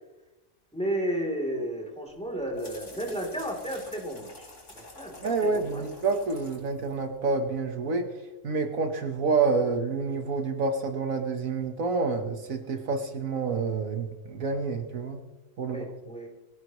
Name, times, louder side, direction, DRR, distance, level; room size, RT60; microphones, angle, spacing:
voice 1, 0.7-5.8 15.7-16.3, right 1 dB, 5° left, 0 dB, 3.3 m, -33 dB
office watercoolermono, 2.1-7.7, left 2 dB, 55° left, 3.9 m, -49 dB
voice 2, 5.2-8.1 8.4-15.2 15.6-15.9, right 4 dB, 70° right, 6 dB, 1.7 m, -28 dB
23.0 x 15.5 x 3.1 m, 1.0 s
omnidirectional pair, 1.5 m